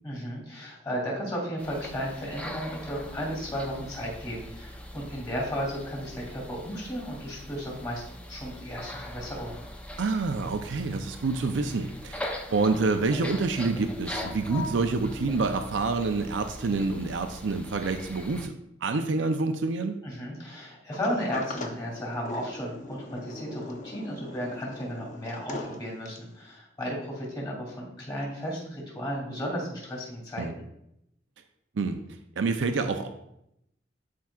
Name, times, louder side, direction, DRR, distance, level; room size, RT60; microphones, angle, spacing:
voice 1, 0.0-8.0 8.3-9.6 20.0-30.6, equal, 25° left, -3 dB, 2.8 m, -34 dB
sound 1, 1.6-18.5, left 1 dB, 5° left, 0.6 m, -41 dB
voice 2, 10.0-18.5 18.8-20.0 30.4-30.5 31.8-32.0 32.4-33.1, right 3 dB, 85° right, 6 dB, 0.5 m, -27 dB
Sliding door, 20.9-26.4, left 2 dB, 45° left, 0.8 m, -40 dB
11.5 x 4.7 x 2.4 m, 0.80 s
head